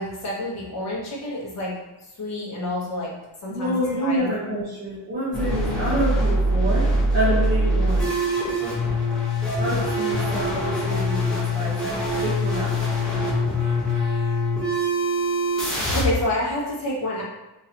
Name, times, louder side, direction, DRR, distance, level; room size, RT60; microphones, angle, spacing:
voice 1, 0.0-1.7 2.0-3.1 3.4-4.7 15.8-17.2, left 1 dB, 35° left, -5 dB, 1.1 m, -28 dB
voice 2, 3.5-8.1 9.6-12.8, equal, 20° right, -11 dB, 1.0 m, -27 dB
sound 1, 5.3-16.0, equal, ahead, 1.3 m, -23 dB
3.8 x 2.9 x 2.9 m, 1.0 s
cardioid pair, 160°, 50 cm